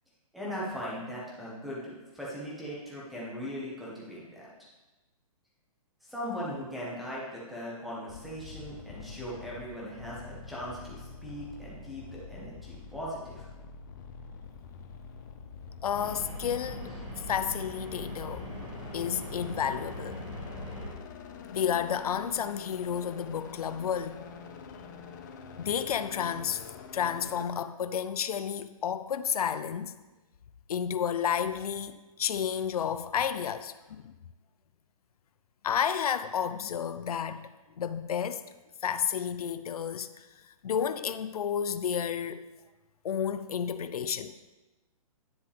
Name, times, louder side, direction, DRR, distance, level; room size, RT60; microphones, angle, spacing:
voice 1, 0.3-4.5 6.0-13.5, equal, ahead, 1.5 m, -39 dB
sound 1, 8.1-27.4, left 5 dB, 30° left, 0.6 m, -46 dB
voice 2, 15.8-17.0 17.3-18.5 18.9-20.2 21.5-24.2 25.6-26.6 26.9-29.9 30.7-34.1 35.6-37.5 37.8-38.4 38.8-40.3 40.6-42.4 43.0-44.3, left 8 dB, 80° left, 0.6 m, -31 dB
sound 2, 15.9-20.9, equal, 20° right, 2.4 m, -41 dB
10.0 x 7.7 x 3.6 m
hypercardioid pair, 170°, 19 cm